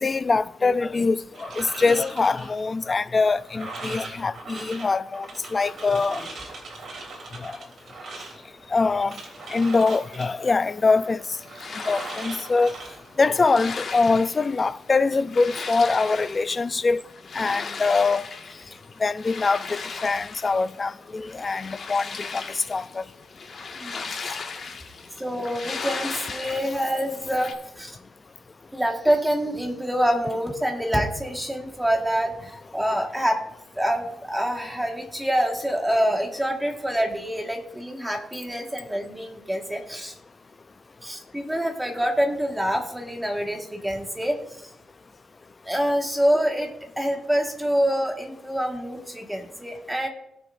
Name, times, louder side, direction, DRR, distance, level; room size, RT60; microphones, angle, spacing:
voice 1, 0.0-6.3 7.4-7.6 8.7-9.2 9.5-11.2 11.9-12.7 13.2-17.0 17.3-18.2 19.0-22.4 22.7-23.0, left 4 dB, 30° left, 0.4 m, -23 dB
sound 1, 1.3-13.7, right 3 dB, 60° right, 3.4 m, -40 dB
sound 2, 9.4-27.5, left 4 dB, 50° left, 1.8 m, -38 dB
voice 2, 23.8-24.3 25.2-28.0 28.7-33.4 33.7-40.1 41.0-44.4 44.6-44.7 45.6-46.7 47.0-50.1, equal, 5° right, 1.7 m, -26 dB
19.5 x 6.8 x 2.6 m
cardioid pair, 115°, 0 cm